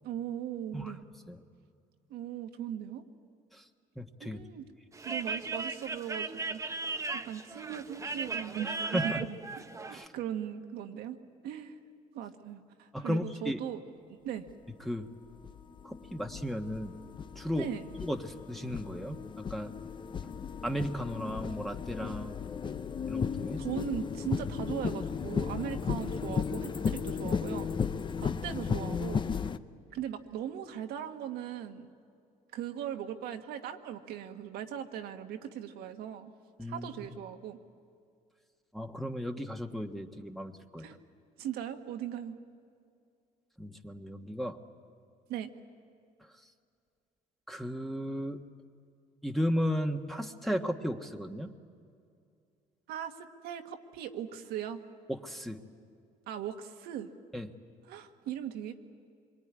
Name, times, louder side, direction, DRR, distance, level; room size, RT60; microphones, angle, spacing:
voice 1, 0.0-1.0 2.1-3.0 4.2-4.6 5.0-6.6 7.1-9.4 9.9-11.2 11.4-11.7 12.1-13.8 14.1-14.5 17.5-17.9 23.6-27.7 28.2-29.2 29.9-31.9 32.5-36.3 36.7-37.6 40.8-41.0 41.4-42.4 45.3-45.5 52.9-54.8 56.3-57.1 57.9-58.8, right 10 dB, 75° right, 6 dB, 1.8 m, -39 dB
voice 2, 3.9-4.4 8.8-9.3 9.9-10.1 12.9-13.6 14.8-15.1 15.8-16.9 17.3-17.7 18.0-19.7 20.6-22.4 23.1-23.6 28.1-28.4 36.6-36.9 38.7-41.0 43.6-44.6 47.5-48.5 49.2-51.5 55.1-55.6 57.3-57.5, equal, ahead, 3 dB, 1.4 m, -35 dB
sound 1, 4.9-10.0, right 3 dB, 20° right, 1.1 m, -37 dB
sound 2, 14.5-14.6 15.3-29.6, left 6 dB, 30° left, 0.8 m, -35 dB
26.5 x 23.0 x 9.8 m, 2.3 s
cardioid pair, 105°, 16 cm